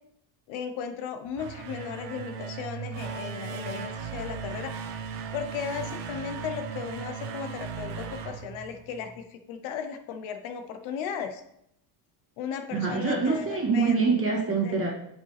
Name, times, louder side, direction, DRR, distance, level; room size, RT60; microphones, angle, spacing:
voice 1, 0.5-4.7 5.3-11.4 12.4-14.0 14.6-14.8, left 7 dB, 70° left, 6 dB, 1.0 m, -36 dB
sound 1, 1.2-9.2, right 6 dB, 80° right, 1.2 m, -37 dB
voice 2, 12.7-14.9, right 4 dB, 25° right, -3 dB, 2.3 m, -25 dB
7.6 x 5.3 x 3.3 m, 0.75 s
cardioid pair, 115°, 50 cm